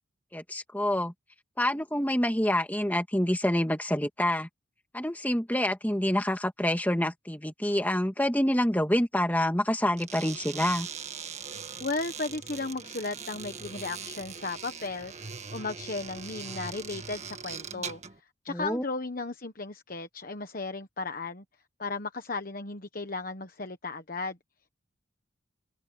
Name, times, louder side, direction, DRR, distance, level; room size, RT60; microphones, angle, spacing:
voice 1, 0.3-1.1 1.6-4.5 4.9-10.9 18.5-18.8, left 1 dB, 10° left, 1.9 m, -27 dB
sound 1, 9.9-18.2, right 6 dB, 30° right, 1.8 m, -41 dB
voice 2, 11.8-15.1 15.5-18.0 18.4-21.4 21.8-24.4, left 3 dB, 45° left, 1.2 m, -35 dB
head